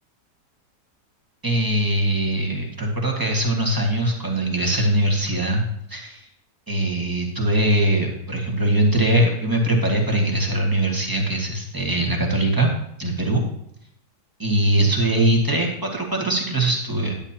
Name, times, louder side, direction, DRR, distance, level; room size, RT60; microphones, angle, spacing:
voice 1, 1.4-5.6 5.9-6.3 6.7-12.7 13.0-13.4 14.4-17.2, right 1 dB, 15° right, -1 dB, 1.5 m, -21 dB
10.5 x 10.5 x 2.8 m, 0.73 s
omnidirectional pair, 1.8 m